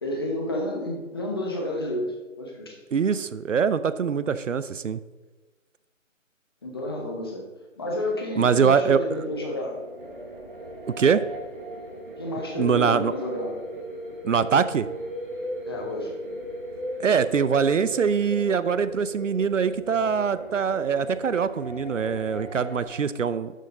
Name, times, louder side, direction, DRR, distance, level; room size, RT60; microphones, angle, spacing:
voice 1, 0.0-2.7 6.6-7.5 7.8-9.8 12.2-13.6 15.7-16.1, left 1 dB, 20° left, 1 dB, 0.9 m, -30 dB
voice 2, 2.9-5.0 8.4-9.2 11.0-11.2 12.6-13.1 14.2-14.9 17.0-23.5, right 6 dB, 70° right, 14 dB, 0.6 m, -23 dB
sound 1, 9.1-22.8, equal, 40° right, 2.1 m, -38 dB
11.5 x 6.5 x 3.9 m, 1.2 s
figure-of-eight pair, 160°, 39 cm